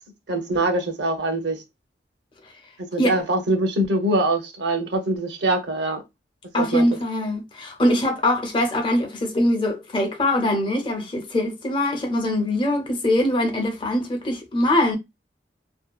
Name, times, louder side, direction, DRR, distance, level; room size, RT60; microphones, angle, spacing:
voice 1, 0.3-1.6 2.8-6.0 6.6-6.9, right 1 dB, 70° right, 0.7 m, -23 dB
voice 2, 6.5-15.0, left 1 dB, 30° left, 0.6 m, -22 dB
2.7 x 2.2 x 2.2 m
head